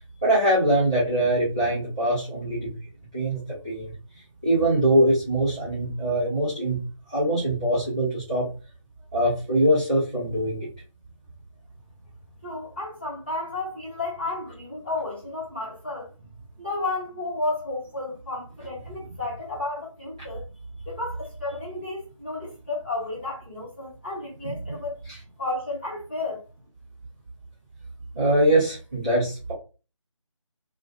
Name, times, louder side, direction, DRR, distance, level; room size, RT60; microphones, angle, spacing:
voice 1, 0.2-2.7 3.1-3.9 4.4-6.8 7.1-8.5 9.1-10.7 24.4-24.8 25.1-25.2 28.1-29.5, right 1 dB, 10° right, 0.6 m, -23 dB
voice 2, 12.4-16.1 16.6-20.5 20.9-25.0 25.4-26.4, left 2 dB, 20° left, 1.2 m, -32 dB
2.4 x 2.4 x 3.3 m
figure-of-eight pair, 160°, 17 cm